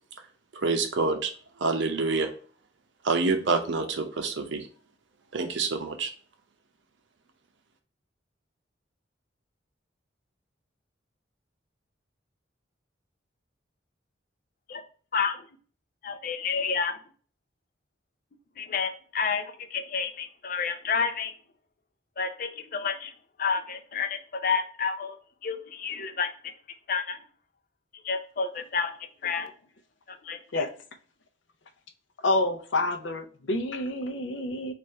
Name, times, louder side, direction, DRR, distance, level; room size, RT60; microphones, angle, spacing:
voice 1, 0.5-1.3 1.6-2.3 3.0-4.7 5.3-6.1, right 3 dB, 75° right, 0.7 m, -27 dB
voice 2, 15.1-15.5 16.0-17.0 18.6-21.3 22.2-23.1 23.4-26.5 26.9-27.2 28.0-28.9 29.2-29.5 30.1-30.7, left 5 dB, 45° left, 0.5 m, -30 dB
voice 3, 32.2-34.7, left 2 dB, 85° left, 0.6 m, -28 dB
3.2 x 2.5 x 4.4 m
head